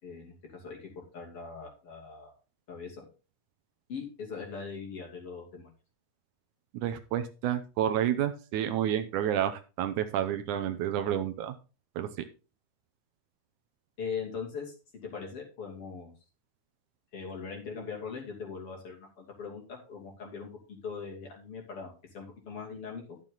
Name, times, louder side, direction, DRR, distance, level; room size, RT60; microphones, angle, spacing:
voice 1, 0.0-2.3 2.7-3.1 3.9-5.7 14.0-16.1 17.1-23.2, left 5 dB, 45° left, 0 dB, 3.5 m, -41 dB
voice 2, 6.7-11.6 12.0-12.1, right 10 dB, 75° right, 9 dB, 2.1 m, -30 dB
12.0 x 7.5 x 3.9 m, 0.32 s
omnidirectional pair, 3.8 m